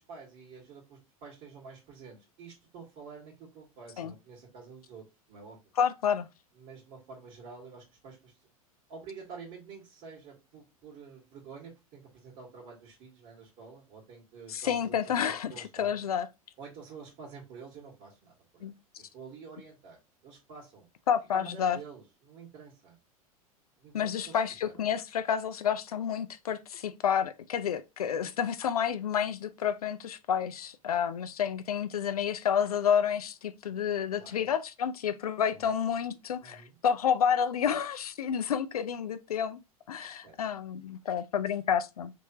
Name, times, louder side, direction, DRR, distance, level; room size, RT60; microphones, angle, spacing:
voice 1, 0.0-5.6 6.5-8.4 8.9-15.9 16.6-18.7 19.0-20.9 21.3-23.0 23.8-24.8 34.1-34.4 35.5-35.7 36.4-36.8 40.2-40.4, right 5 dB, 45° right, 1.8 m, -49 dB
voice 2, 5.8-6.3 14.5-15.5 15.8-16.3 18.6-18.7 21.1-21.8 23.9-39.6 39.9-42.1, left 8 dB, 80° left, 0.5 m, -29 dB
3.4 x 3.2 x 3.0 m
hypercardioid pair, 90°, 19 cm